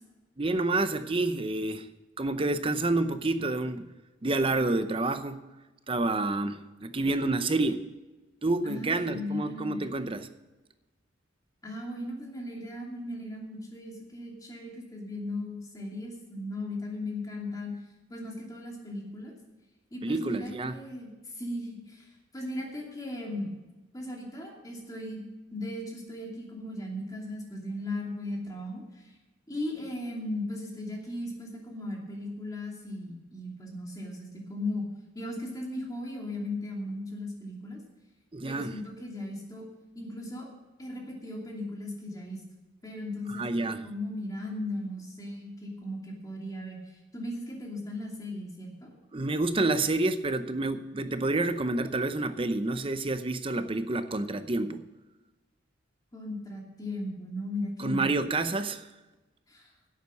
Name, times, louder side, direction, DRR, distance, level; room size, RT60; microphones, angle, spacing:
voice 1, 0.4-1.9 2.2-3.9 4.2-5.4 5.9-7.9 8.4-10.3 20.0-20.7 38.3-38.8 43.3-43.8 49.1-54.8 57.8-58.9, right 2 dB, 30° right, 10 dB, 0.7 m, -28 dB
voice 2, 8.6-9.8 11.6-17.7 18.1-19.3 19.9-22.1 22.3-23.6 23.9-25.2 25.5-29.1 29.5-34.9 35.1-37.8 38.4-39.7 39.9-40.5 40.8-42.4 42.8-43.6 43.8-48.9 56.1-58.1 59.5-59.7, left 1 dB, 20° left, -1 dB, 2.7 m, -37 dB
11.0 x 8.4 x 6.3 m, 1.1 s
head